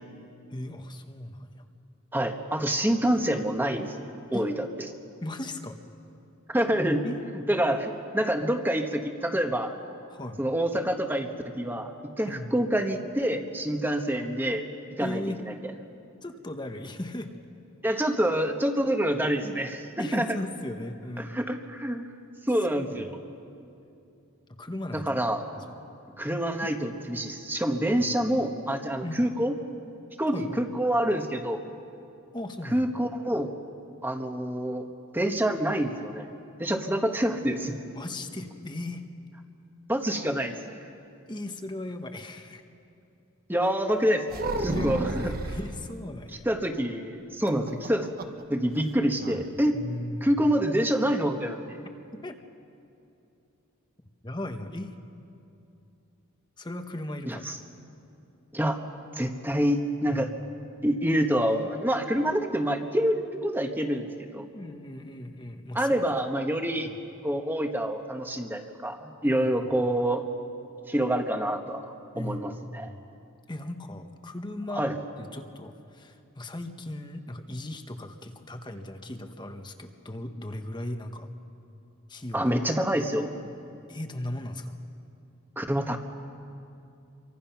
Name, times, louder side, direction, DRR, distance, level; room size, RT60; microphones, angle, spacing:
voice 1, 0.5-1.6 4.3-4.5 5.2-5.8 7.0-7.2 10.1-10.4 12.3-12.5 15.0-15.4 16.2-17.3 20.0-21.3 22.7-23.2 24.6-25.2 25.5-25.6 26.7-26.8 27.9-28.2 29.0-29.2 30.3-30.6 32.3-32.8 37.9-39.0 41.3-42.6 44.7-46.5 49.7-50.3 52.1-52.4 54.2-54.9 56.6-57.5 60.1-60.4 64.5-66.0 66.7-67.0 69.2-69.6 72.1-73.0 73.5-74.8 75.2-81.3 82.1-82.4 83.9-84.8, left 1 dB, 20° left, 6 dB, 1.1 m, -37 dB
voice 2, 2.1-4.7 6.5-7.1 7.3-9.7 10.4-14.6 15.0-15.6 17.8-20.3 21.2-22.0 22.5-23.1 24.9-25.4 26.2-29.5 30.2-31.6 32.7-33.5 34.0-34.9 35.1-36.3 36.6-37.8 39.9-40.6 43.5-45.3 46.4-48.1 48.5-49.8 50.2-51.8 57.2-57.6 58.5-58.8 59.1-60.3 60.8-64.4 65.7-66.9 67.2-70.2 70.8-72.9 74.7-75.0 82.3-83.3 85.6-86.0, right 1 dB, 10° right, 5 dB, 1.3 m, -27 dB
sound 1, 44.3-45.7 47.5-48.4 48.7-48.8 49.2-49.5, right 1 dB, 40° right, 1.0 m, -32 dB
27.5 x 24.0 x 5.9 m, 2.7 s
head